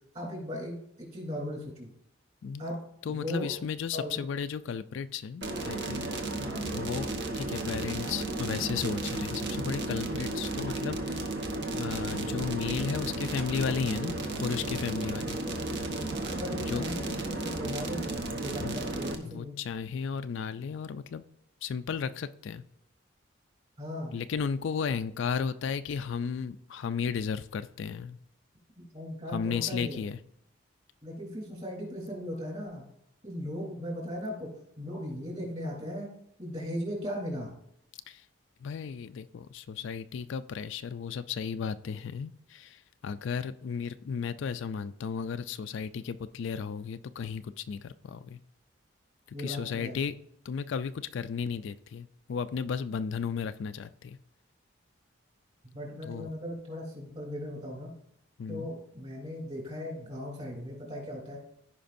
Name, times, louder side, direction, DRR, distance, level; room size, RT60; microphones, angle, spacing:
voice 1, 0.1-1.9 2.6-2.8 3.1-3.5 3.9-4.2 6.3-6.7 15.4-15.6 16.1-18.1 18.4-19.6 23.8-24.2 28.8-30.1 31.0-32.8 33.2-34.5 34.8-36.1 36.4-37.5 49.3-50.0 55.6-57.9 58.5-61.4, equal, 30° right, -1 dB, 3.2 m, -38 dB
voice 2, 3.1-6.1 6.7-7.1 7.4-11.3 11.7-15.4 16.5-16.8 18.6-18.8 19.2-21.2 21.6-22.6 24.1-28.2 29.3-30.2 38.1-38.2 38.6-48.4 49.4-50.1 50.5-54.2 56.1-56.3 58.4-58.7, left 6 dB, 65° left, 12 dB, 0.3 m, -34 dB
sound 1, 5.4-19.2, right 2 dB, 55° right, 1.0 m, -34 dB
15.5 x 5.1 x 2.6 m, 0.74 s
head